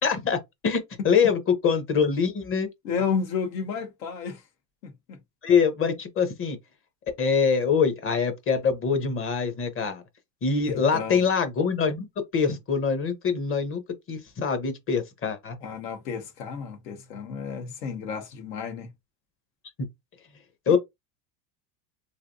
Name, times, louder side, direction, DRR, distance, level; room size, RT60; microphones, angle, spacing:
voice 1, 0.0-0.8 1.0-2.7 5.4-6.6 7.2-10.0 10.4-12.1 12.3-13.8 14.1-15.6 20.7-20.8, left 6 dB, 25° left, 0.8 m, -24 dB
voice 2, 2.8-4.4 4.8-4.9 10.9-11.2 15.6-18.9 20.7-20.8, left 6 dB, 80° left, 1.3 m, -31 dB
3.3 x 2.5 x 2.5 m
supercardioid pair, 105°, 48 cm